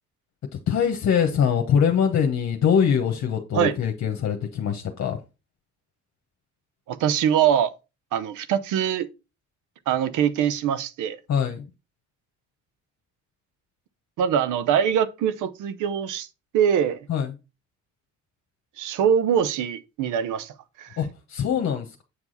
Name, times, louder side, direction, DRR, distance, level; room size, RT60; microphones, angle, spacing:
voice 1, 0.5-5.2 11.3-11.7 17.1-17.4 21.0-22.0, left 7 dB, 60° left, 1.2 m, -23 dB
voice 2, 6.9-7.7 8.1-9.1 9.9-11.2 14.2-16.3 16.5-17.0 18.8-20.9, right 9 dB, 85° right, 0.7 m, -23 dB
8.4 x 4.8 x 4.0 m
cardioid pair, 90°, 30 cm